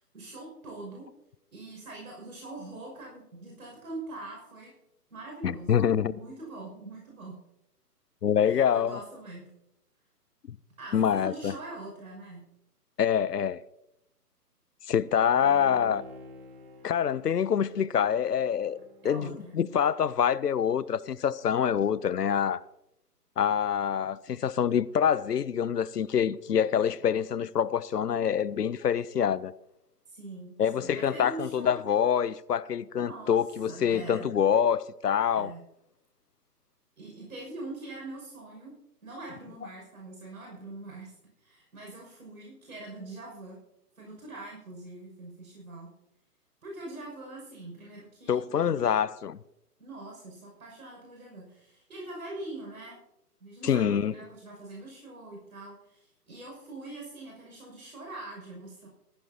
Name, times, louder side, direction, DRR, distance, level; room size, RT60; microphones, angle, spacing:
voice 1, 0.1-1.1 1.5-4.7 5.1-7.4 8.4-9.5 10.8-12.5 19.0-19.6 30.1-31.8 33.1-33.4 33.7-34.3 35.3-35.6 37.0-38.8 39.0-43.6 44.0-45.9 46.6-49.0 49.8-53.0 53.4-58.9, right 2 dB, 65° right, 6.1 m, -43 dB
voice 2, 5.4-6.1 8.2-9.0 10.5-10.6 10.9-11.6 13.0-13.6 14.9-16.0 16.8-18.8 19.0-22.6 23.4-29.5 30.6-35.5 48.3-49.4 53.6-54.1, left 8 dB, 75° left, 0.7 m, -26 dB
Bowed string instrument, 15.3-19.9 20.3-20.4, left 1 dB, 35° right, 2.7 m, -49 dB
17.5 x 14.5 x 2.8 m
figure-of-eight pair, 140°, 48 cm